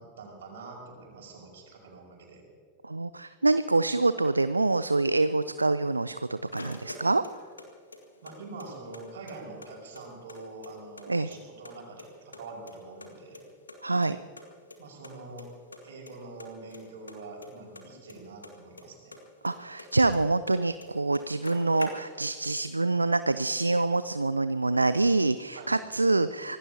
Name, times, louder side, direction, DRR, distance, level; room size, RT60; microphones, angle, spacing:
voice 1, 0.0-2.4 8.2-13.4 14.8-15.5 15.8-19.1 25.5-25.8, right 3 dB, 60° right, -1 dB, 5.4 m, -45 dB
voice 2, 2.8-7.2 11.1-11.3 13.8-14.2 19.4-26.6, right 2 dB, 80° right, 13 dB, 0.4 m, -26 dB
sound 1, 5.9-7.7 7.9-9.0 9.3-9.4 9.6-11.0 11.3-12.1 12.3-13.8 14.0-14.1 14.4-14.5 14.7-14.8 15.0-15.4 15.7-16.1 16.4-18.8 19.1-20.5 20.8-20.9 21.1-22.4, left 2 dB, 80° left, 1.9 m, -45 dB
25.5 x 18.5 x 2.9 m, 2.1 s
figure-of-eight pair, 90°, 0 cm